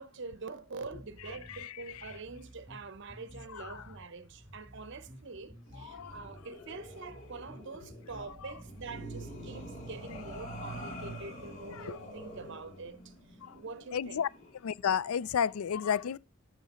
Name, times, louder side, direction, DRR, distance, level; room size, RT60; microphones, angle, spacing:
voice 1, 0.0-13.1 13.5-14.3, right 4 dB, 60° right, 0.8 m, -45 dB
sound 1, 0.9-10.5, equal, 20° right, 3.2 m, -53 dB
sound 2, 5.7-14.6, right 1 dB, 35° left, 2.7 m, -46 dB
voice 2, 13.9-14.3 14.6-16.2, left 8 dB, 85° left, 0.4 m, -31 dB
12.5 x 5.9 x 3.0 m
head